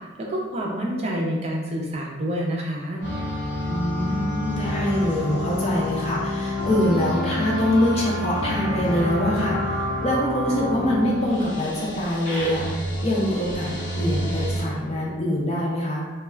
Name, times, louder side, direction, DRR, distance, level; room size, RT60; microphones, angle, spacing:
voice 1, 0.2-3.0, equal, 35° right, -2 dB, 0.4 m, -27 dB
sound 1, 3.0-14.6, left 1 dB, 90° left, 0.9 m, -28 dB
voice 2, 3.7-16.0, left 1 dB, 35° left, -4 dB, 0.5 m, -24 dB
2.2 x 2.2 x 3.2 m, 1.4 s
head